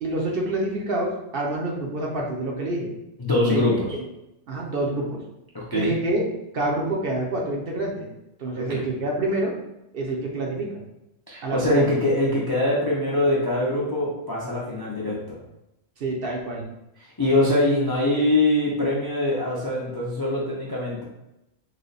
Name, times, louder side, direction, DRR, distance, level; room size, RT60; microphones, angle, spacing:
voice 1, 0.0-2.9 3.4-3.6 4.5-5.2 5.7-6.3 6.5-8.1 8.4-9.5 9.9-10.8 11.4-11.9 16.0-16.6, right 2 dB, 55° right, -1 dB, 0.8 m, -27 dB
voice 2, 3.2-3.9 5.5-5.9 8.5-8.9 11.3-15.4 17.0-21.0, left 1 dB, 35° left, -5 dB, 0.3 m, -23 dB
3.2 x 2.1 x 3.9 m, 0.90 s
omnidirectional pair, 1.2 m